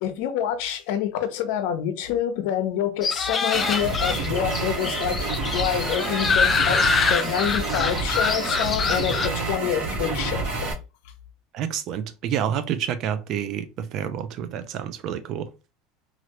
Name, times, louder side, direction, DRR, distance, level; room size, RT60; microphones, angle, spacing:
voice 1, 0.0-5.3 5.5-10.7, left 9 dB, 70° left, 0.6 m, -27 dB
sound 1, 3.0-9.3, left 5 dB, 30° left, 0.4 m, -25 dB
sound 2, 3.5-10.7, right 3 dB, 80° right, 1.3 m, -28 dB
voice 2, 11.5-15.5, right 9 dB, 50° right, 0.5 m, -28 dB
3.1 x 2.5 x 2.9 m
supercardioid pair, 120°, 0 cm